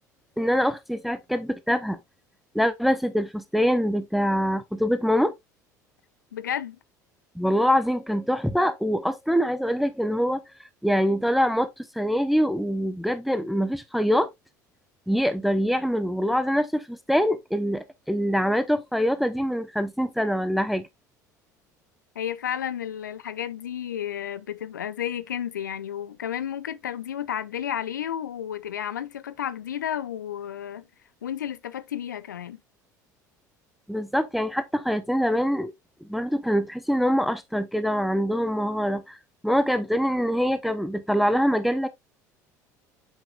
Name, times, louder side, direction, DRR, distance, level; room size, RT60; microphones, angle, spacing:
voice 1, 0.4-2.0 2.5-5.3 7.4-10.4 10.8-14.3 15.1-20.9 33.9-35.7 36.1-39.2 39.4-41.9, equal, ahead, 0.7 m, -24 dB
voice 2, 6.3-6.8 22.2-30.8 31.2-32.6, left 10 dB, 80° left, 0.5 m, -32 dB
8.0 x 5.9 x 2.4 m
figure-of-eight pair, 65°, 10 cm